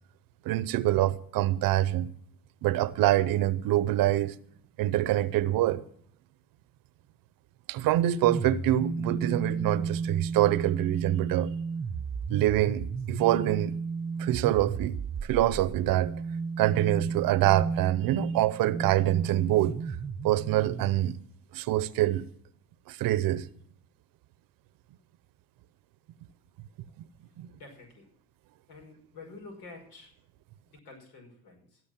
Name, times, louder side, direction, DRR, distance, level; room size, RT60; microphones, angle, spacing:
voice 1, 0.4-2.1 2.6-4.4 4.8-5.8 7.7-11.5 12.3-13.7 14.2-16.1 16.6-19.8 20.2-21.2 21.5-22.2 22.9-23.5 27.0-27.1 27.4-27.5, right 14 dB, 65° right, 0.8 m, -25 dB
sound 1, 8.2-21.0, right 5 dB, 20° right, 0.8 m, -34 dB
voice 2, 27.6-28.1 28.7-30.1 30.7-31.8, left 3 dB, 90° left, 5.4 m, -48 dB
17.0 x 6.4 x 7.4 m
cardioid pair, 100°, 36 cm